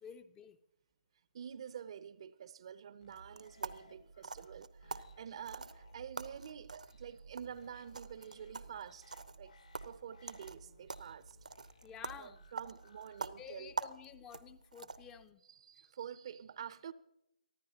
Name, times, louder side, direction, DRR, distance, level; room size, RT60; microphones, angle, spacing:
voice 1, 0.0-0.6 11.8-12.4 13.4-15.4, left 8 dB, 15° left, 0.6 m, -51 dB
voice 2, 1.3-9.6 9.8-11.4 12.2-13.9 15.5-16.9, right 8 dB, 45° right, 0.6 m, -48 dB
sound 1, 3.0-13.8, left 4 dB, 70° left, 2.3 m, -65 dB
sound 2, 3.1-15.2, right 4 dB, 75° right, 0.8 m, -47 dB
24.0 x 14.5 x 2.9 m
figure-of-eight pair, 140°, 4 cm